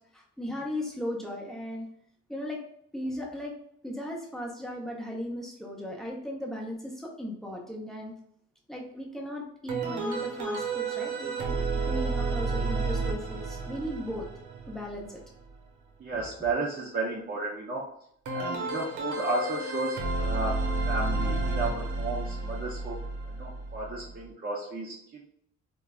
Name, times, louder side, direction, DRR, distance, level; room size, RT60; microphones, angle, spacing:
voice 1, 0.1-1.9 2.3-2.6 2.9-3.5 3.8-8.1 8.7-14.3 14.7-15.2, left 1 dB, ahead, -2 dB, 0.8 m, -37 dB
sound 1, 9.7-15.5 18.3-24.2, right 3 dB, 75° right, 0.8 m, -31 dB
voice 2, 16.0-17.8 18.3-20.6 20.8-23.0 23.3-25.3, right 3 dB, 30° right, -4 dB, 0.6 m, -33 dB
3.1 x 2.2 x 2.3 m, 0.70 s
cardioid pair, 90°, 30 cm